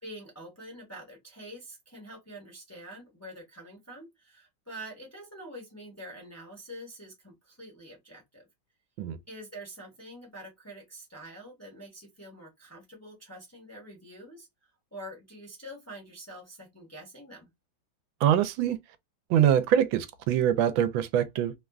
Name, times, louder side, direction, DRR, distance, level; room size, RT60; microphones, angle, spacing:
voice 1, 0.0-8.5 9.3-14.5 14.9-17.5, equal, 10° left, 0.9 m, -46 dB
voice 2, 18.2-18.8 19.3-21.5, right 10 dB, 85° right, 1.4 m, -24 dB
3.5 x 2.2 x 2.3 m
omnidirectional pair, 2.1 m